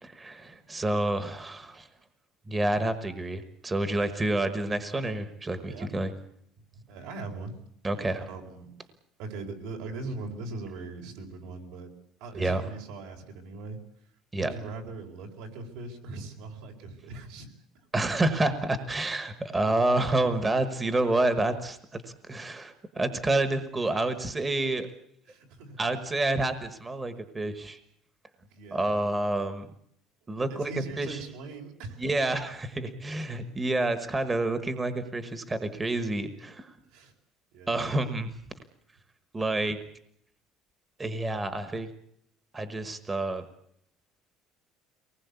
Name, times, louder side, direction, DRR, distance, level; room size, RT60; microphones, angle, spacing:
voice 1, 0.0-1.9 2.5-6.1 7.8-8.3 12.3-12.6 14.3-14.5 17.9-24.9 25.8-27.8 28.7-29.7 30.3-30.7 31.0-31.2 32.0-36.7 37.7-38.3 39.3-39.8 41.0-41.9 42.5-43.4, right 2 dB, 15° right, 10 dB, 1.3 m, -28 dB
voice 2, 6.7-7.6 8.3-8.7 9.2-11.9 12.2-13.8 14.4-17.5 25.3-25.8 28.5-29.0 30.5-32.0 36.9-37.1 37.5-37.9, right 3 dB, 80° right, 3 dB, 4.6 m, -40 dB
24.5 x 19.5 x 8.3 m, 0.71 s
cardioid pair, 175°, 0 cm